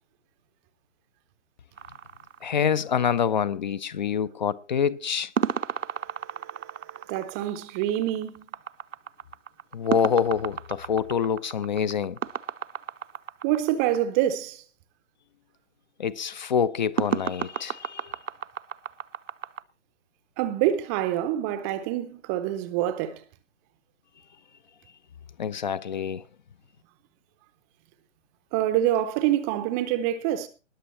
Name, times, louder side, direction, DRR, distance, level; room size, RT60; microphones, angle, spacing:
sound 1, 1.8-3.2 5.4-14.0 17.0-19.6, right 7 dB, 75° right, 0.8 m, -33 dB
voice 1, 2.4-5.3 9.7-12.2 16.0-18.1 25.4-26.2, left 7 dB, 35° left, 0.6 m, -26 dB
voice 2, 6.1-8.4 13.4-14.6 20.4-23.2 28.5-30.5, right 12 dB, 15° right, 0.6 m, -26 dB
20.5 x 6.9 x 4.3 m
figure-of-eight pair, 130°, 38 cm